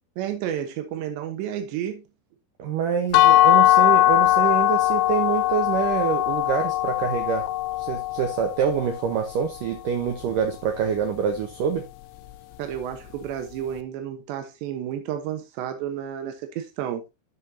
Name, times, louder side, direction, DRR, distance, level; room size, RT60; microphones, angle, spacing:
voice 1, 0.2-2.0 12.6-17.0, right 10 dB, 85° right, 3.4 m, -31 dB
voice 2, 2.6-7.5 7.8-11.8, right 7 dB, 70° right, 2.2 m, -26 dB
sound 1, 3.1-9.0, left 15 dB, 90° left, 2.9 m, -20 dB
13.0 x 5.9 x 2.8 m
omnidirectional pair, 4.9 m